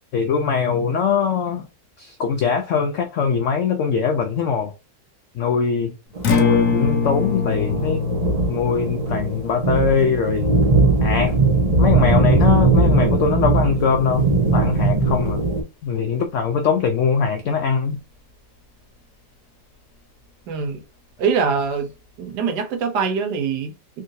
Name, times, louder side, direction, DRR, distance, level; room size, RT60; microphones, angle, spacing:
voice 1, 0.1-1.6 2.0-4.7 5.4-5.9 6.3-8.0 8.5-10.6 11.0-11.4 11.8-15.4 15.8-18.0, left 6 dB, 85° left, 0.6 m, -21 dB
Acoustic guitar, 6.1-14.3, left 5 dB, 60° left, 1.0 m, -26 dB
sound 1, 6.2-15.6, right 3 dB, 30° right, 0.7 m, -20 dB
voice 2, 20.5-20.8 21.2-21.9 22.2-24.0, right 5 dB, 75° right, 1.3 m, -23 dB
3.7 x 2.5 x 2.6 m
omnidirectional pair, 1.8 m